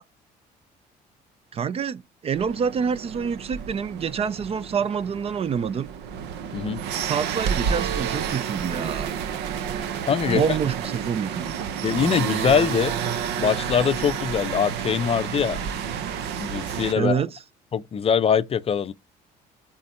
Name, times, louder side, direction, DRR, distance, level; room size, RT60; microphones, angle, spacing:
voice 1, 1.5-5.9 7.0-9.1 10.3-11.6 17.0-17.4, right 6 dB, 35° right, 0.5 m, -27 dB
sound 1, 2.3-16.9, right 8 dB, 90° right, 0.9 m, -30 dB
voice 2, 10.1-10.4 11.8-12.9 13.4-15.7 16.4-17.2 17.7-18.9, left 7 dB, 35° left, 0.5 m, -23 dB
8.1 x 3.8 x 4.2 m
cardioid pair, 110°, 17 cm